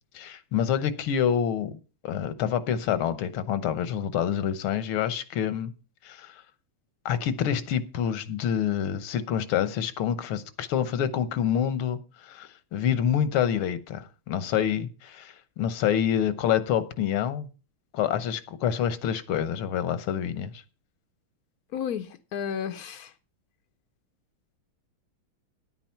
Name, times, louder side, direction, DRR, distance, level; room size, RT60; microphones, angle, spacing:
voice 1, 0.1-1.7 2.0-5.7 6.1-6.3 7.1-17.5 17.9-20.6, left 9 dB, 85° left, 1.8 m, -27 dB
voice 2, 21.7-23.1, left 8 dB, 70° left, 0.9 m, -32 dB
9.8 x 8.9 x 5.7 m
omnidirectional pair, 2.3 m